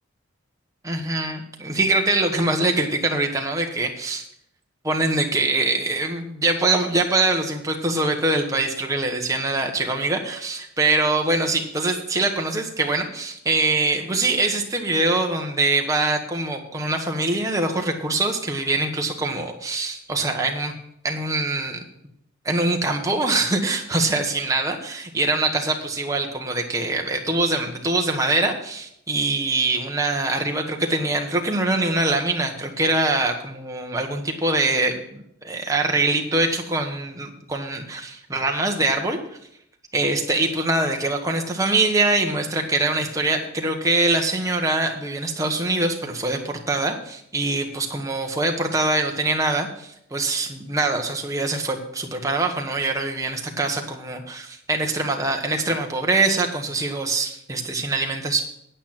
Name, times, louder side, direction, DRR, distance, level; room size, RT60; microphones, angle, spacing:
voice 1, 0.8-4.3 4.8-20.7 21.0-21.8 22.4-39.2 39.9-58.4, right 2 dB, 15° right, 2 dB, 1.2 m, -23 dB
9.0 x 8.5 x 5.9 m, 0.74 s
head